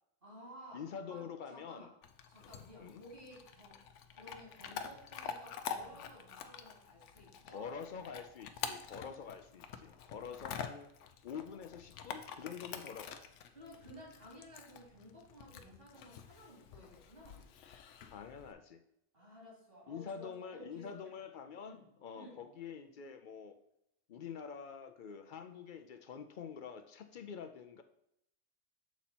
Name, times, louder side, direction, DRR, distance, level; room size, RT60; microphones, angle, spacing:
voice 1, 0.2-1.2 1.5-1.9 2.3-3.8 4.1-7.8 13.5-17.5 19.1-21.0 21.6-21.8 22.1-22.4, equal, 55° right, -4 dB, 2.7 m, -55 dB
voice 2, 0.7-1.9 2.8-3.0 7.5-10.9 11.2-13.2 18.1-18.8 19.9-23.6 24.1-27.8, left 6 dB, 60° left, 8 dB, 0.6 m, -46 dB
Chewing mastication / Dog, 2.0-18.5, left 7 dB, 85° left, 0.9 m, -47 dB
7.1 x 4.3 x 4.1 m, 0.80 s
omnidirectional pair, 1.2 m